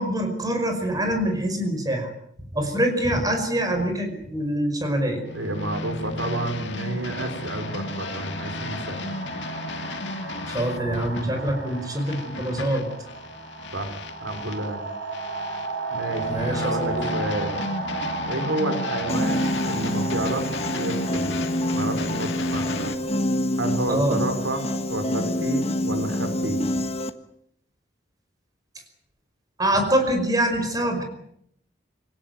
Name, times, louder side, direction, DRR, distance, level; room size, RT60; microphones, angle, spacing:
voice 1, 0.0-2.1 2.5-5.2 10.5-12.9 16.3-17.1 23.9-24.2 29.6-31.0, right 1 dB, 20° right, 5 dB, 5.2 m, -24 dB
sound 1, 5.1-5.3 6.3-22.9, right 3 dB, 70° right, 7.2 m, -35 dB
sound 2, 5.2-14.7 15.1-23.0, left 2 dB, 70° left, 2.2 m, -34 dB
voice 2, 5.3-9.2 13.7-14.8 15.9-17.6 18.3-21.3 21.7-22.9 23.6-26.6, right 1 dB, 90° right, 6 dB, 5.0 m, -30 dB
Piano, 19.1-27.1, left 1 dB, 35° left, 1.4 m, -27 dB
25.5 x 17.5 x 9.3 m, 0.72 s
head